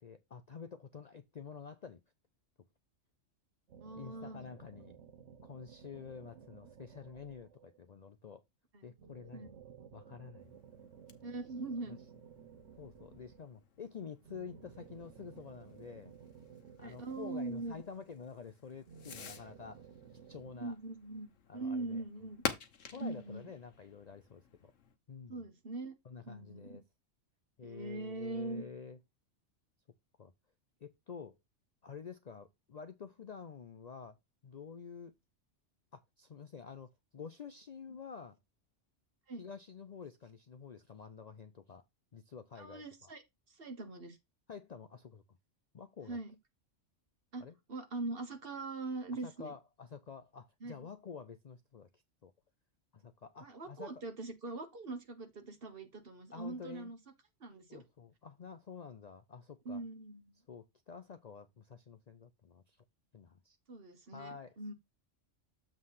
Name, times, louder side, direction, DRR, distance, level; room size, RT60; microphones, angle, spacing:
voice 1, 0.0-2.0 3.9-5.0 5.4-8.4 8.8-9.6 9.9-10.5 11.9-12.0 12.8-16.1 16.8-19.9 20.3-20.8 21.5-22.0 22.9-24.7 25.1-25.4 26.0-26.8 27.6-29.0 30.2-30.3 30.8-31.4 31.8-34.2 34.4-35.1 35.9-38.4 39.4-41.8 42.1-43.1 44.5-45.2 45.7-46.2 47.4-47.6 49.2-51.9 52.2-52.3 52.9-53.9 56.3-56.9 57.7-59.8 60.5-62.8 63.1-63.6 64.1-64.7, left 6 dB, 50° left, 0.5 m, -49 dB
sound 1, 3.7-7.9 9.0-13.6 14.2-18.3 18.9-20.5, right 7 dB, 70° right, 1.1 m, -56 dB
voice 2, 3.8-4.5 8.7-8.9 9.3-9.5 11.2-12.0 16.8-17.8 20.5-22.4 23.0-23.5 25.3-25.9 26.3-26.8 27.6-28.7 39.3-39.4 42.6-43.2 43.5-44.2 46.1-46.3 47.3-49.5 50.6-50.8 53.4-57.0 57.4-57.8 59.6-60.4 63.7-64.7, right 2 dB, 50° right, 1.4 m, -42 dB
Fireworks, 10.4-25.0, left 7 dB, 85° left, 1.3 m, -49 dB
7.6 x 3.2 x 5.6 m
omnidirectional pair, 1.3 m